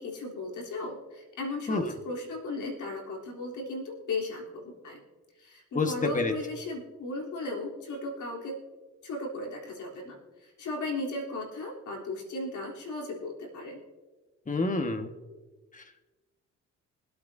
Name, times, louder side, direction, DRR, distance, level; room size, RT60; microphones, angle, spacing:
voice 1, 0.0-5.0 5.4-8.6 9.0-13.8, left 2 dB, 70° left, -1 dB, 3.5 m, -36 dB
voice 2, 5.7-6.3 14.5-15.1, left 3 dB, 25° left, 6 dB, 1.6 m, -27 dB
25.0 x 8.6 x 2.8 m, 1.3 s
supercardioid pair, 70°, 32 cm